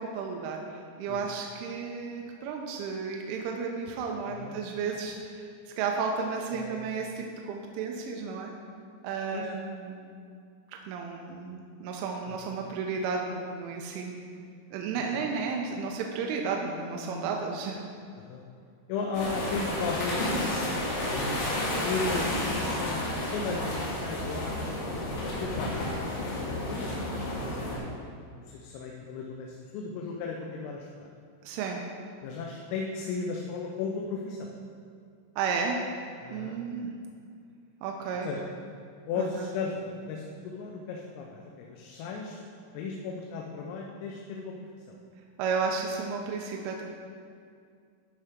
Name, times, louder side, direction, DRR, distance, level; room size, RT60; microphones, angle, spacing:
voice 1, 0.0-5.5 5.8-8.5 9.0-10.1 10.9-14.2 14.7-17.8 31.4-31.8 35.4-35.8 36.3-36.9 37.8-38.3 39.2-39.5 45.4-46.8, right 5 dB, 80° right, 1 dB, 3.1 m, -33 dB
voice 2, 4.2-4.6 6.6-6.8 9.3-9.5 12.3-12.5 15.0-15.1 18.1-18.4 18.9-20.8 21.8-28.1 28.5-31.1 32.2-34.5 36.2-36.6 38.2-38.4 39.1-42.4 42.7-44.5 44.9-45.0, left 4 dB, 90° left, 0 dB, 3.4 m, -36 dB
sound 1, 19.1-27.8, left 1 dB, 60° left, 2.9 m, -31 dB
13.0 x 5.5 x 3.6 m, 2.3 s
omnidirectional pair, 5.8 m